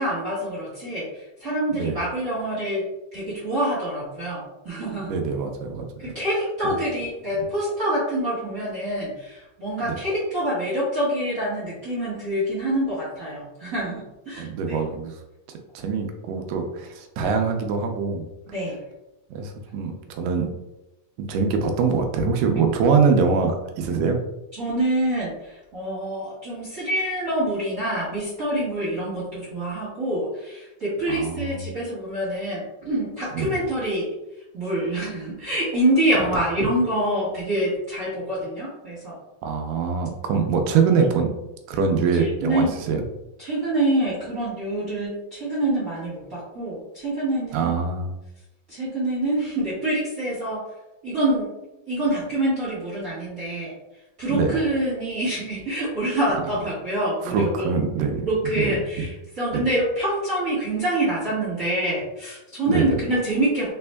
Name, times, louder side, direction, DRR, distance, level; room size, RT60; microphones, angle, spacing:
voice 1, 0.0-2.8 3.1-5.1 6.0-14.8 17.2-17.4 18.5-18.8 22.5-22.6 24.5-34.0 34.5-39.2 42.1-42.7 43.4-47.7 48.7-50.6 51.0-51.5 51.9-53.7 54.2-57.7 58.2-63.7, right 1 dB, 50° right, -8 dB, 1.0 m, -26 dB
voice 2, 5.1-6.0 6.6-6.7 9.8-10.0 14.4-15.2 15.8-18.3 19.3-20.5 21.2-24.2 31.1-31.7 33.3-33.6 39.4-41.3 41.7-43.0 47.5-48.1 54.3-54.5 57.3-58.3 58.6-59.1 59.5-59.6 62.7-63.0, right 5 dB, 80° right, 4 dB, 2.2 m, -23 dB
4.3 x 4.2 x 2.2 m, 0.94 s
omnidirectional pair, 3.9 m